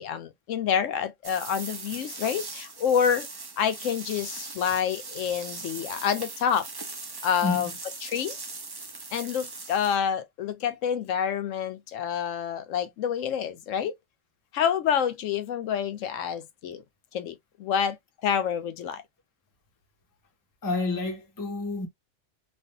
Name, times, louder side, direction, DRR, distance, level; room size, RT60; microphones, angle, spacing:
voice 1, 0.0-3.3 3.6-6.7 7.2-7.7 8.0-8.4 9.1-13.9 14.5-16.8 17.1-18.0 18.2-19.0, left 8 dB, 85° left, 1.0 m, -28 dB
sound 1, 1.2-10.0, right 3 dB, 30° right, 0.4 m, -40 dB
voice 2, 7.4-7.7 20.6-21.9, left 3 dB, 20° left, 0.6 m, -29 dB
3.2 x 2.5 x 2.6 m
omnidirectional pair, 1.3 m